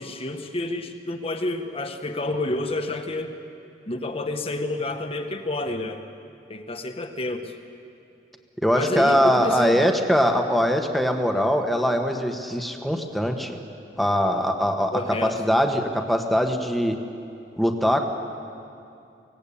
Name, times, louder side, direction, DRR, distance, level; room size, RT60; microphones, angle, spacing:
voice 1, 0.0-3.3 3.9-6.0 6.5-7.5 8.7-9.8 14.9-15.4, left 2 dB, 35° left, 6 dB, 1.5 m, -29 dB
voice 2, 8.6-13.6 14.0-16.9 17.6-18.1, equal, ahead, 4 dB, 1.5 m, -22 dB
24.0 x 17.0 x 8.7 m, 2.6 s
head